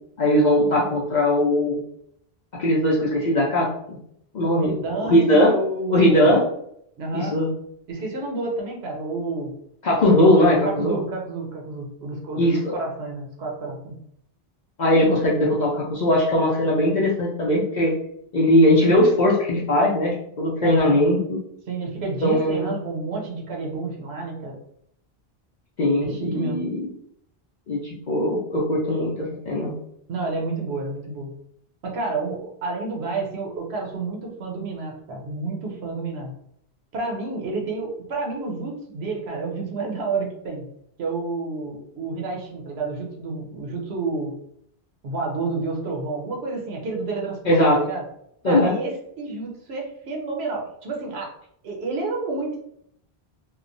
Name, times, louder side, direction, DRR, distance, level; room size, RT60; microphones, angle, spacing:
voice 1, 0.2-1.8 2.6-4.0 4.3-4.7 5.0-5.5 5.9-6.4 7.1-7.5 9.8-11.0 12.4-12.6 14.8-17.9 18.3-21.4 22.2-22.7 25.8-26.9 27.7-29.7 47.5-47.8 48.4-48.7, left 1 dB, 55° left, -4 dB, 0.6 m, -19 dB
voice 2, 4.4-6.3 7.0-7.4 7.9-9.5 10.2-10.3 10.6-12.4 12.7-14.0 20.6-21.0 21.7-24.6 26.0-26.6 30.1-31.3 31.8-36.3 36.9-40.6 41.0-44.3 45.0-48.0 48.4-51.3 51.6-52.6, right 3 dB, 90° right, 0 dB, 1.0 m, -30 dB
2.9 x 2.1 x 2.5 m, 0.71 s
omnidirectional pair, 1.0 m